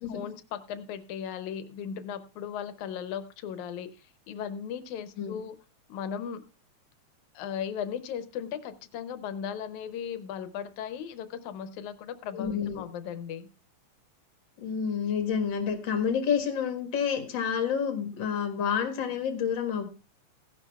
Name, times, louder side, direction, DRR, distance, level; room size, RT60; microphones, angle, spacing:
voice 1, 0.1-5.6 5.9-6.4 7.3-13.5, left 8 dB, 85° left, 11 dB, 2.3 m, -37 dB
voice 2, 12.3-12.8 14.6-19.9, left 7 dB, 45° left, 5 dB, 2.0 m, -29 dB
16.5 x 11.0 x 2.3 m, 0.33 s
omnidirectional pair, 3.3 m